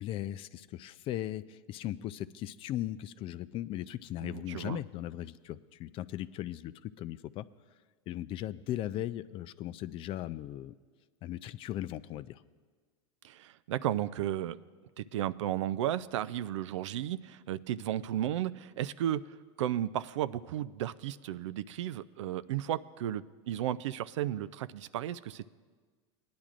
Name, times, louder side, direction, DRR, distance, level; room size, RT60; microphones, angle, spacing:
voice 1, 0.0-7.5 8.1-10.7 11.2-12.4, left 13 dB, 35° left, 16 dB, 0.3 m, -38 dB
voice 2, 4.2-4.8 13.2-14.6 15.0-19.2 19.6-25.5, right 12 dB, 85° right, 15 dB, 0.4 m, -34 dB
19.5 x 10.5 x 2.5 m, 1.5 s
supercardioid pair, 120°, 15 cm